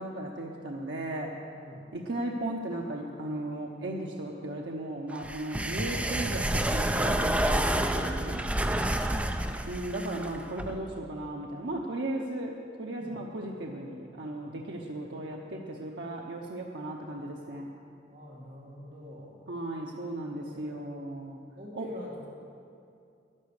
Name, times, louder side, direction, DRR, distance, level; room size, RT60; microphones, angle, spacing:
voice 1, 0.0-1.3 1.9-8.4 9.7-17.7 19.5-21.4 21.8-21.9, right 1 dB, 80° right, -1 dB, 0.9 m, -36 dB
voice 2, 1.5-1.9 8.9-9.7 13.0-13.2 15.0-15.2 18.1-19.5 20.3-20.9 21.5-22.3, left 1 dB, 50° right, -4 dB, 2.2 m, -46 dB
sound 1, 5.2-10.8, right 1 dB, 10° right, 0.5 m, -29 dB
11.0 x 10.5 x 6.6 m, 2.5 s
head